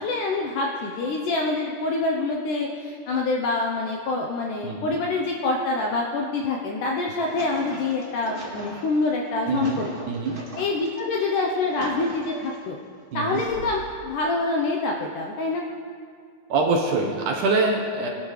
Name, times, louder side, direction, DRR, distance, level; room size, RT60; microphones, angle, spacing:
voice 1, 0.0-10.1 10.6-12.8 13.1-15.6, left 3 dB, 75° left, 0 dB, 2.1 m, -26 dB
voice 2, 4.6-5.0 9.5-10.4 13.1-13.4 16.5-18.1, right 3 dB, 65° right, 0 dB, 2.2 m, -24 dB
sound 1, 7.0-11.0 11.4-12.7 13.3-14.1, right 1 dB, 35° right, 0.8 m, -40 dB
21.5 x 12.5 x 3.3 m, 2.1 s
omnidirectional pair, 4.5 m